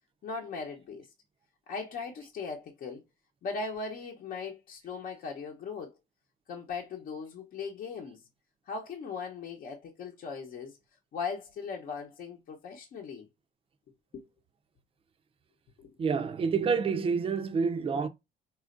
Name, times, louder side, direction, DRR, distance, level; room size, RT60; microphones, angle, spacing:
voice 1, 0.2-1.1 1.7-3.0 3.4-5.9 6.5-8.2 8.7-10.8 11.1-13.3 14.1-14.3 15.8-15.9, left 5 dB, 55° left, 0.8 m, -38 dB
voice 2, 16.0-18.1, right 5 dB, 35° right, 0.5 m, -28 dB
4.2 x 2.4 x 2.5 m
cardioid pair, 110°, 17 cm